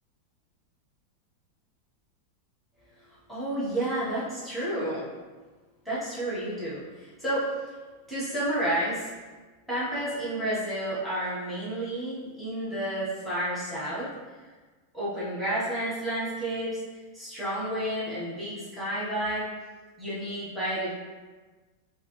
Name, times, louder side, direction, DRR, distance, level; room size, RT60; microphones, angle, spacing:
voice 1, 3.3-5.1 5.8-7.7 8.1-9.1 9.7-14.1 14.9-16.8 17.1-19.5 20.0-20.9, right 1 dB, ahead, -11 dB, 0.4 m, -30 dB
3.2 x 2.8 x 3.0 m, 1.3 s
omnidirectional pair, 2.1 m